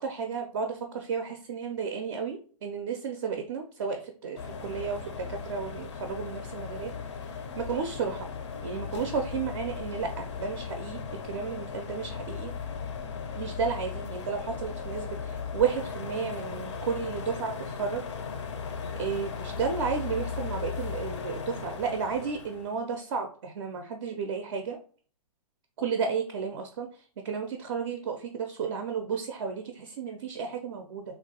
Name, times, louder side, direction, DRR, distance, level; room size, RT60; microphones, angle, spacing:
voice 1, 0.0-6.9 7.6-8.3 8.6-12.5 13.4-18.0 19.0-24.8 25.8-26.9 27.2-31.0, right 6 dB, 40° right, 5 dB, 0.4 m, -33 dB
sound 1, 4.4-22.8, left 6 dB, 50° left, 0.5 m, -37 dB
3.3 x 2.2 x 2.7 m, 0.42 s
figure-of-eight pair, 115°, 19 cm